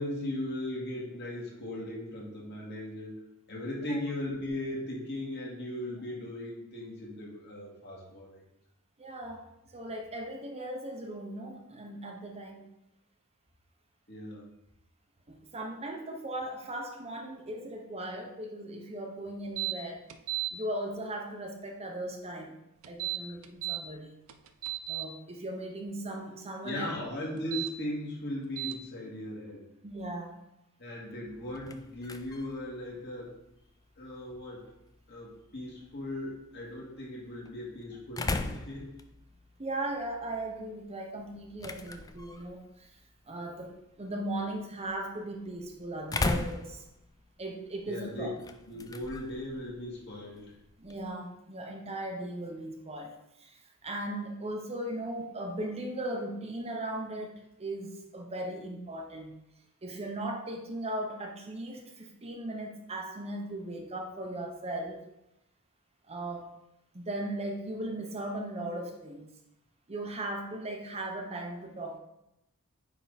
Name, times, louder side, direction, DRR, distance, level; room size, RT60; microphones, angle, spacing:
voice 1, 0.0-3.2 3.5-8.4 14.1-14.5 26.6-29.7 30.8-33.3 34.0-34.6 35.1-38.9 47.9-48.3 48.7-50.5, left 1 dB, 50° left, -5 dB, 2.1 m, -38 dB
voice 2, 9.0-9.4 9.7-12.6 15.3-20.0 20.5-22.6 22.9-24.2 24.9-27.0 29.8-30.4 39.6-42.9 43.3-46.8 47.4-48.3 50.8-59.4 59.8-65.0 66.1-66.5 66.9-69.3 69.9-72.0, right 1 dB, 30° right, 2 dB, 0.8 m, -38 dB
sound 1, 19.6-19.7 20.1-20.5 22.8-23.8 24.3-25.0 27.4-27.7 28.6-28.7, right 18 dB, 65° right, 0.5 m, -33 dB
sound 2, 31.3-51.1, left 3 dB, 15° left, 0.3 m, -41 dB
9.1 x 3.6 x 4.1 m, 0.87 s
head